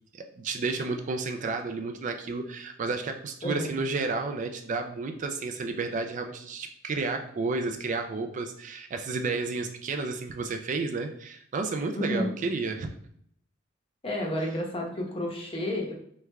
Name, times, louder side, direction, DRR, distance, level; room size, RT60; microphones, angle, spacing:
voice 1, 0.1-12.9, right 3 dB, 40° right, 5 dB, 0.3 m, -31 dB
voice 2, 3.4-3.7 11.9-12.3 14.0-15.9, left 1 dB, 25° left, -1 dB, 0.8 m, -30 dB
3.4 x 3.2 x 3.3 m, 0.67 s
head